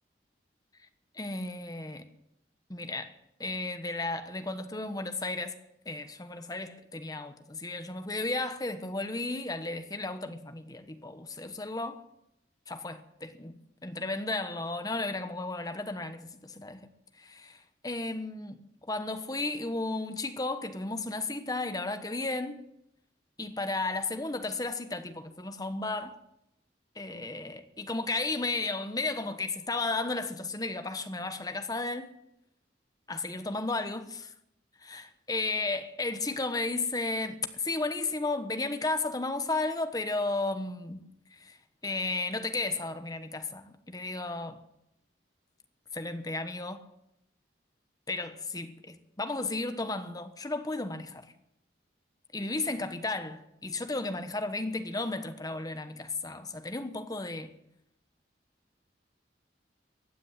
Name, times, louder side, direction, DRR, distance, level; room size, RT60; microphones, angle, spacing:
voice 1, 1.1-2.1 2.7-3.1 3.4-5.6 5.8-12.0 12.7-16.9 17.2-22.6 23.4-26.2 26.9-32.1 33.1-34.3 34.8-41.6 41.8-44.6 45.9-46.9 48.1-51.3 52.3-57.5, left 2 dB, 20° left, 1.1 m, -34 dB
15.5 x 9.4 x 9.6 m
head